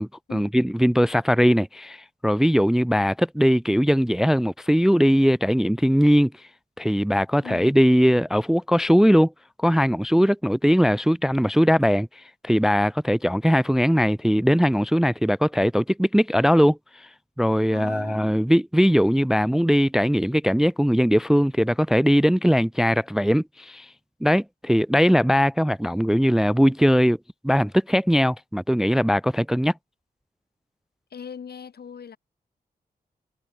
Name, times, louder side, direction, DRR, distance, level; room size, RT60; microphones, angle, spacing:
voice 1, 0.0-6.3 6.8-9.3 9.6-17.1 17.4-23.9 24.2-27.2 27.4-29.7, equal, 5° right, 0.3 m, -20 dB
voice 2, 17.7-18.5 31.1-32.2, left 7 dB, 75° left, 7.7 m, -40 dB
wide cardioid pair, 110°, 16 cm